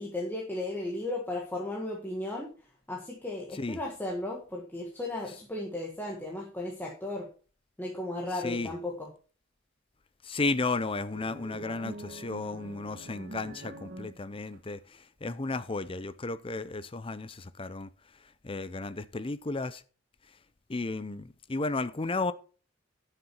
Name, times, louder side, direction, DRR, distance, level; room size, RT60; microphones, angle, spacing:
voice 1, 0.0-2.5 2.9-7.3 7.8-9.1, left 2 dB, 10° left, 1.6 m, -35 dB
voice 2, 10.2-17.9 18.4-19.8 20.7-22.3, left 3 dB, 25° left, 0.6 m, -33 dB
sound 1, 11.1-14.6, right 2 dB, 45° right, 1.5 m, -45 dB
11.0 x 6.7 x 4.5 m
head